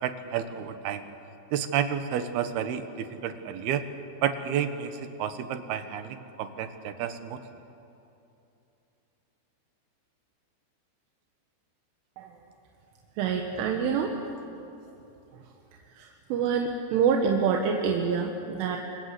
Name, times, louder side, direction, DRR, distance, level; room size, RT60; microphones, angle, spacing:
voice 1, 0.0-1.0 1.5-3.8 4.2-4.9 5.2-7.4, right 9 dB, 70° right, 9 dB, 2.7 m, -30 dB
voice 2, 13.2-14.2 15.9-18.8, right 6 dB, 90° right, 2 dB, 4.0 m, -26 dB
27.5 x 26.0 x 7.8 m, 2.8 s
omnidirectional pair, 5.5 m